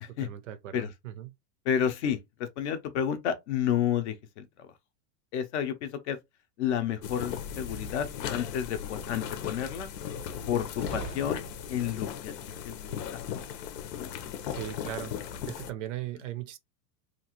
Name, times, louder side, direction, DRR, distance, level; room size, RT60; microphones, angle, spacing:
voice 1, 0.2-1.3 14.5-15.1 15.5-16.6, right 12 dB, 50° right, 0.5 m, -38 dB
voice 2, 1.7-4.7 5.3-6.2 6.6-9.9 10.5-11.4 11.7-12.3 12.6-13.2 14.8-14.9, left 9 dB, 45° left, 0.6 m, -31 dB
sound 1, 7.0-15.7, left 8 dB, 85° left, 0.8 m, -37 dB
sound 2, 7.4-8.3 10.8-11.9, right 2 dB, 10° left, 0.7 m, -43 dB
2.9 x 2.4 x 2.9 m
supercardioid pair, 165°, 49 cm